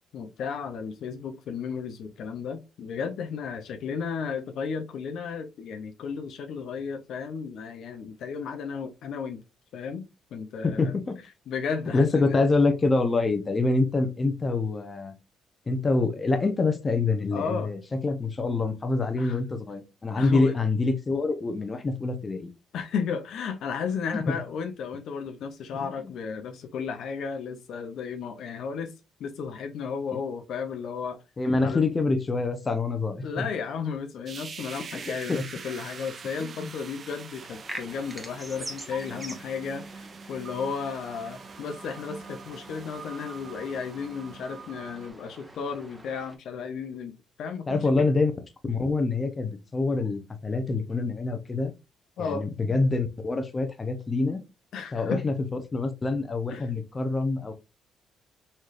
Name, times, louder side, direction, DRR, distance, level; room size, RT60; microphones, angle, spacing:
voice 1, 0.1-9.4 9.7-10.9 11.5-12.4 17.3-17.7 19.2-19.4 20.2-20.6 22.7-28.9 29.2-31.2 31.6-31.8 33.2-48.1 52.2-52.5 54.7-55.2 56.5-56.7, left 6 dB, 75° left, 0.6 m, -34 dB
voice 2, 10.6-11.2 11.9-15.1 15.7-22.5 24.1-24.2 25.8-25.9 31.4-33.4 34.9-35.0 35.3-35.4 36.4-36.7 47.7-48.3 48.6-51.7 52.2-54.4 54.9-55.3 55.7-57.5, left 3 dB, 30° left, 0.8 m, -26 dB
sound 1, 34.3-45.1, right 5 dB, 45° right, 0.4 m, -44 dB
sound 2, 37.4-46.4, right 1 dB, 15° right, 1.0 m, -45 dB
4.2 x 3.2 x 2.4 m
cardioid pair, 90°, 0 cm